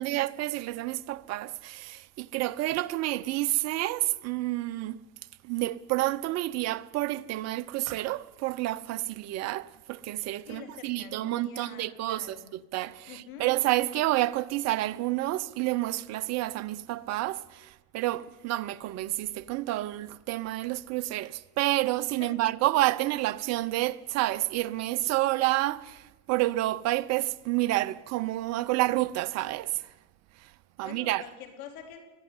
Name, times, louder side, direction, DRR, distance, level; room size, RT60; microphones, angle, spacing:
voice 1, 0.0-5.0 5.4-29.9 30.4-30.5 30.8-31.3, right 17 dB, 35° right, 0.8 m, -29 dB
voice 2, 10.5-12.5 13.1-13.5 22.2-22.4 30.8-32.0, left 7 dB, 70° left, 4.3 m, -46 dB
20.5 x 13.5 x 9.6 m
hypercardioid pair, 110°, 43 cm